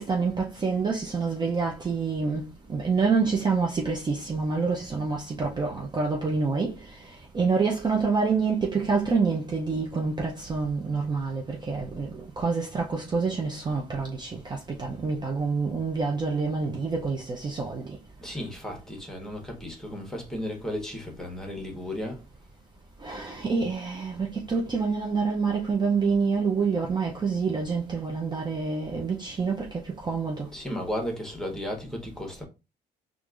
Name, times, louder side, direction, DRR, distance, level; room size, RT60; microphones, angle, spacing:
voice 1, 0.0-7.0 7.3-17.8 23.0-30.5, right 4 dB, 25° right, 0.6 m, -27 dB
voice 2, 18.2-22.2 30.5-32.4, left 1 dB, 5° left, 1.1 m, -34 dB
4.4 x 2.5 x 2.4 m
cardioid pair, 110°, 17 cm